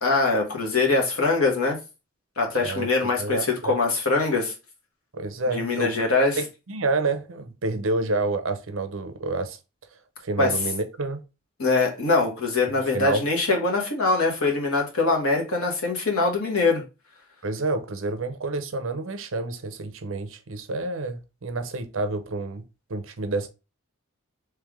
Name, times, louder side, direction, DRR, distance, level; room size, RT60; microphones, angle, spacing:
voice 1, 0.0-1.8 2.4-4.5 5.5-6.4 10.4-10.5 11.6-16.8, left 3 dB, 80° left, 1.4 m, -23 dB
voice 2, 2.6-3.8 5.1-5.9 6.4-9.6 10.2-11.2 12.8-13.2 17.4-22.6 22.9-23.5, right 2 dB, 60° right, 0.6 m, -29 dB
3.4 x 3.3 x 3.6 m
head